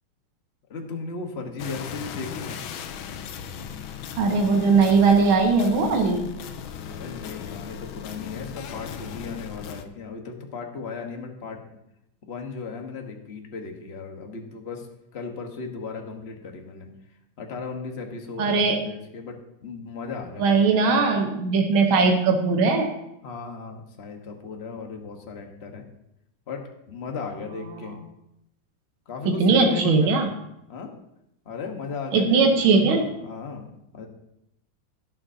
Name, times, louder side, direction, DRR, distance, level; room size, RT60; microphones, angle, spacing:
voice 1, 0.7-2.6 6.9-11.6 12.3-14.9 15.1-16.9 17.4-20.8 23.2-25.8 26.5-28.0 29.1-30.4 30.7-30.9 31.4-34.1, left 4 dB, 35° left, 2 dB, 1.4 m, -36 dB
sound 1, 1.6-9.9, left 8 dB, 90° left, 1.6 m, -37 dB
voice 2, 4.2-6.3 18.4-18.8 20.4-22.9 29.3-30.3 32.1-33.1, right 4 dB, 85° right, 3 dB, 1.9 m, -19 dB
17.0 x 7.7 x 2.8 m, 0.82 s
omnidirectional pair, 2.2 m